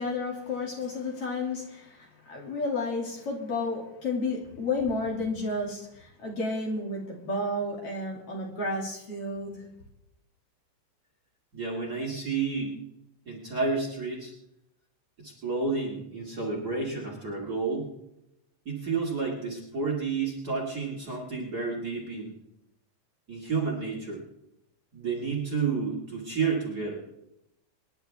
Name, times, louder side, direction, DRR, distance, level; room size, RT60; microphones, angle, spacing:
voice 1, 0.0-9.7, left 2 dB, 45° left, -1 dB, 3.3 m, -32 dB
voice 2, 11.5-12.8 13.3-14.3 15.2-17.9 18.7-22.3 23.3-24.2 24.9-27.0, right 4 dB, 35° right, -1 dB, 2.3 m, -30 dB
25.5 x 11.0 x 3.5 m, 0.82 s
omnidirectional pair, 3.7 m